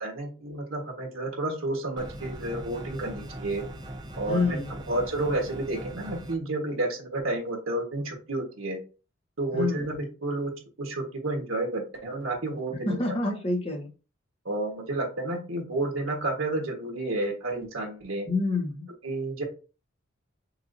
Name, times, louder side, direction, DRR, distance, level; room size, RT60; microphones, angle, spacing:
voice 1, 0.0-3.6 4.2-8.8 9.4-10.5 10.8-13.0 14.4-18.3 19.0-19.4, right 2 dB, 85° right, 2 dB, 1.5 m, -31 dB
sound 1, 2.0-6.4, right 1 dB, 20° right, 0.6 m, -40 dB
voice 2, 4.3-4.8 9.5-9.9 12.8-13.9 18.3-18.9, left 3 dB, 30° left, 1 dB, 1.0 m, -27 dB
5.9 x 2.6 x 2.7 m, 0.34 s
head